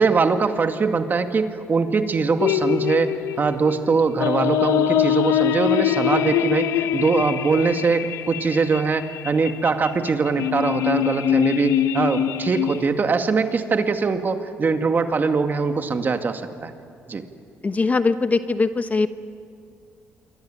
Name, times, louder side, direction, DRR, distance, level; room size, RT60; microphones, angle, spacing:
voice 1, 0.0-16.7 17.1-17.2, right 4 dB, 40° right, 6 dB, 2.2 m, -22 dB
sound 1, 2.4-12.9, left 11 dB, 80° left, 0.9 m, -23 dB
voice 2, 17.6-19.1, left 3 dB, 30° left, 10 dB, 1.1 m, -21 dB
28.0 x 23.5 x 9.1 m, 2.5 s
cardioid pair, 85°, 5 cm